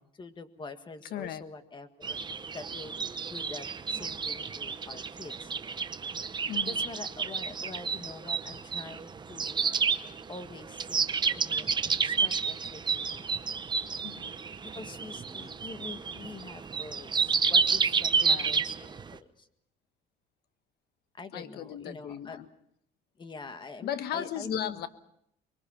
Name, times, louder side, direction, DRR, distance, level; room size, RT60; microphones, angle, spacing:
voice 1, 0.0-2.2 2.5-3.0 3.2-5.5 6.7-9.8 10.3-13.3 14.7-19.5 21.1-22.4 23.2-24.8, left 3 dB, 30° left, 9 dB, 1.8 m, -45 dB
voice 2, 1.1-1.4 6.5-6.9 14.0-14.4 15.3-15.5 18.2-18.5 21.3-22.5 23.8-24.9, left 10 dB, 70° left, 12 dB, 1.2 m, -36 dB
sound 1, 2.0-19.2, right 5 dB, 25° right, 0.9 m, -30 dB
25.0 x 22.0 x 5.7 m, 0.73 s
cardioid pair, 110°, 17 cm